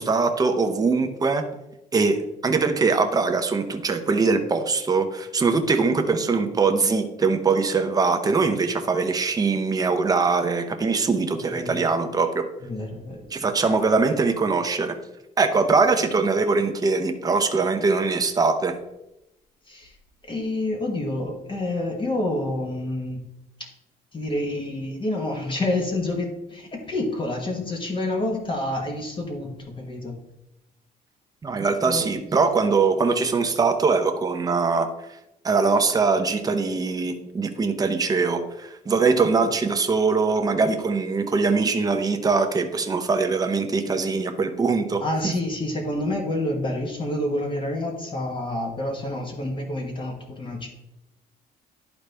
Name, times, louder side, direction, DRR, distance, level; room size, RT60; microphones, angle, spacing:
voice 1, 0.0-1.4 1.9-12.5 13.3-15.0 15.4-18.8 31.4-34.9 35.4-45.3, right 4 dB, 20° right, 6 dB, 0.8 m, -22 dB
voice 2, 11.5-11.8 12.6-13.4 19.7-19.9 20.3-23.2 24.1-30.1 31.8-32.1 45.0-50.7, left 1 dB, 30° left, 2 dB, 1.3 m, -28 dB
11.5 x 4.0 x 3.4 m, 0.88 s
cardioid pair, 110°, 17 cm